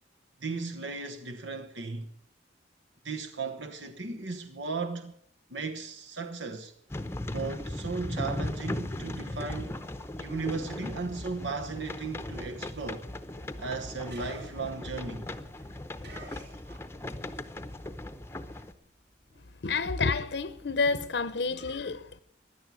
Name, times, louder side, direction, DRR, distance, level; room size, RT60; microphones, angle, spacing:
voice 1, 0.4-2.1 3.0-5.1 5.5-6.7 7.3-9.8 10.2-13.1 13.6-15.2, right 4 dB, 80° right, 1.1 m, -36 dB
sound 1, 6.9-18.7, left 1 dB, 15° left, 0.7 m, -38 dB
sound 2, 14.1-17.3 17.6-20.9, right 1 dB, 65° right, 3.0 m, -52 dB
voice 2, 19.4-22.2, left 4 dB, 70° left, 0.7 m, -29 dB
16.0 x 11.0 x 6.2 m
head